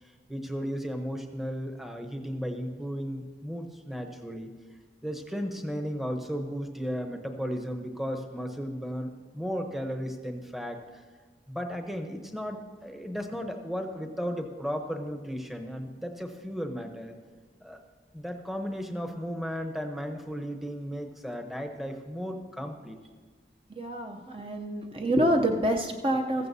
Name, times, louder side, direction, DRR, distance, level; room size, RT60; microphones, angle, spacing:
voice 1, 0.3-4.5 5.0-11.0 11.5-17.1 17.6-17.8 18.1-23.0, equal, ahead, 4 dB, 0.8 m, -35 dB
voice 2, 23.8-26.5, right 1 dB, 30° right, 3 dB, 0.6 m, -27 dB
15.0 x 14.5 x 2.7 m, 1.5 s
head